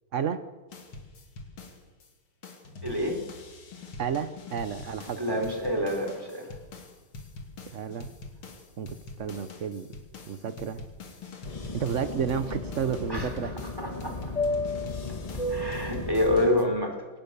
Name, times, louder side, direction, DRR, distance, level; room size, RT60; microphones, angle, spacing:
voice 1, 0.1-0.4 4.0-5.4 7.7-8.1 8.8-9.9 10.3-10.8 11.7-13.5, right 7 dB, 65° right, 11 dB, 0.7 m, -31 dB
sound 1, 0.7-2.1 2.4-16.6, left 3 dB, 75° left, 3.5 m, -45 dB
voice 2, 2.8-3.2 5.2-6.5 13.1-13.3 13.8-14.2 15.5-17.1, left 1 dB, 10° right, 2 dB, 4.2 m, -27 dB
Fixed-wing aircraft airplane, 11.4-16.5, left 2 dB, 20° left, 1.1 m, -33 dB
22.5 x 18.5 x 6.9 m, 1.2 s
omnidirectional pair, 2.4 m